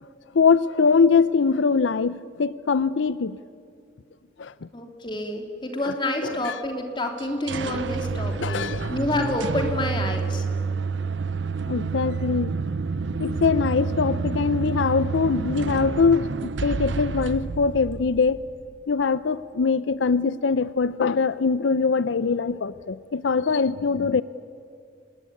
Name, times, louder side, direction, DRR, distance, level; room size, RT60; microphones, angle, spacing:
voice 1, 0.3-3.4 4.4-4.5 5.8-5.9 6.2-6.6 8.4-8.9 11.7-12.6 13.2-16.3 16.6-18.4 18.9-24.2, left 5 dB, 85° left, 16 dB, 0.5 m, -22 dB
voice 2, 4.7-10.4, left 1 dB, 25° left, 4 dB, 3.0 m, -28 dB
sound 1, 7.2-18.8, right 4 dB, 85° right, 0.7 m, -29 dB
25.5 x 20.5 x 9.7 m, 2.4 s
head